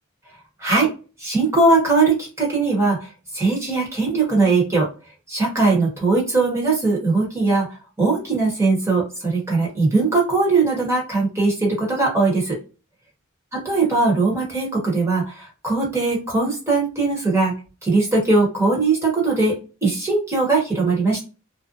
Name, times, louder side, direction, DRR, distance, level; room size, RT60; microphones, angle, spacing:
voice 1, 0.6-0.9 1.2-4.9 5.3-12.6 13.5-17.5 17.8-21.2, right 3 dB, 15° right, -3 dB, 1.1 m, -20 dB
2.5 x 2.1 x 2.6 m, 0.33 s
head